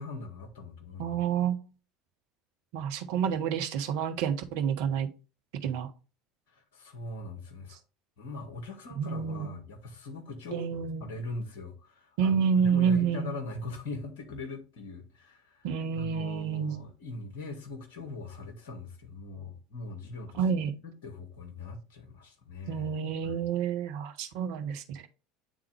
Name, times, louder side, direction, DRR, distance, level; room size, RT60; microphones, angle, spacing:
voice 1, 0.0-1.2 6.5-7.8 8.2-15.7 15.9-20.4 20.8-22.9 23.2-23.4, left 2 dB, 65° left, 1.6 m, -41 dB
voice 2, 1.0-1.6 2.7-5.1 5.6-5.9 9.0-9.5 10.5-11.1 12.2-13.3 15.6-16.8 20.4-20.7 22.7-25.1, right 7 dB, 60° right, 0.9 m, -29 dB
9.1 x 3.6 x 3.3 m
figure-of-eight pair, 70°, 0 cm